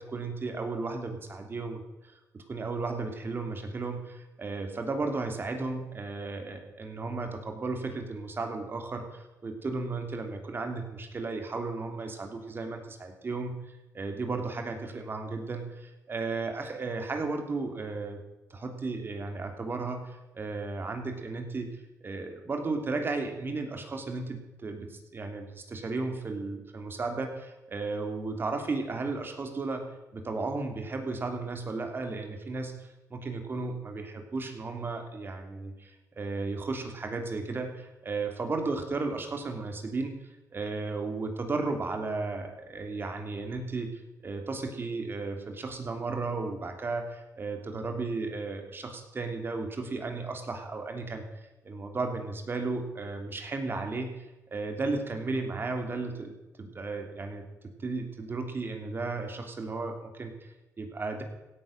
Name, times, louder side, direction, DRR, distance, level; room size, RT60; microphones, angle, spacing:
voice 1, 0.0-13.6 13.9-18.2 18.5-51.3 51.6-61.2, right 3 dB, 35° right, 5 dB, 2.8 m, -34 dB
16.5 x 9.6 x 6.5 m, 1.0 s
cardioid pair, 105°, 6 cm